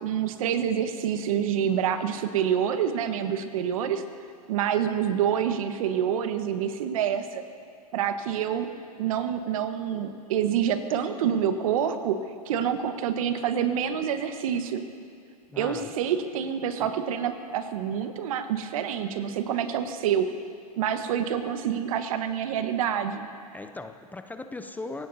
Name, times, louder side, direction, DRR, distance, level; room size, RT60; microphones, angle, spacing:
voice 1, 0.0-4.0 4.5-7.4 7.9-8.7 9.0-14.8 15.6-20.3 20.8-23.3, right 8 dB, 60° right, 8 dB, 1.3 m, -27 dB
voice 2, 15.5-15.9 23.5-25.1, left 2 dB, 10° left, 8 dB, 0.6 m, -38 dB
27.0 x 17.0 x 2.8 m, 2.3 s
hypercardioid pair, 105°, 20 cm